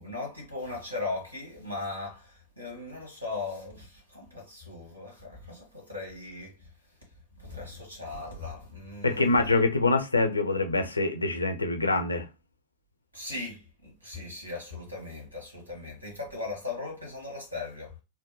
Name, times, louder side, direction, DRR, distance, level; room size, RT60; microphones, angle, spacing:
voice 1, 0.0-6.7 7.4-9.3 13.1-18.0, left 3 dB, 85° right, 1.5 m, -38 dB
voice 2, 9.0-12.3, left 3 dB, 80° left, 0.6 m, -25 dB
3.8 x 2.1 x 3.2 m
figure-of-eight pair, 90°, 0 cm